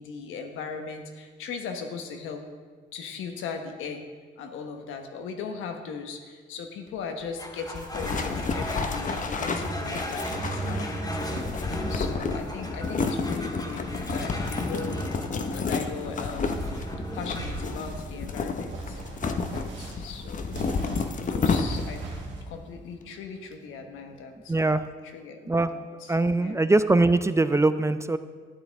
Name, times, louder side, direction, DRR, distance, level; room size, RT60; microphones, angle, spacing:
voice 1, 0.0-2.4 2.9-4.0 4.4-15.1 15.5-16.6 17.1-20.8 21.2-22.0 22.5-24.5 25.0-26.6, left 5 dB, 85° left, 4 dB, 1.2 m, -38 dB
sound 1, 7.4-24.1, equal, 20° left, 1.7 m, -37 dB
sound 2, 7.7-22.1, left 4 dB, 40° left, 0.8 m, -31 dB
sound 3, 16.0-22.4, right 2 dB, 75° right, 1.9 m, -39 dB
voice 2, 24.5-24.8 25.5-25.7 26.1-28.2, right 2 dB, 15° right, 12 dB, 0.4 m, -22 dB
12.0 x 8.9 x 3.5 m, 1.5 s
cardioid pair, 90°, 20 cm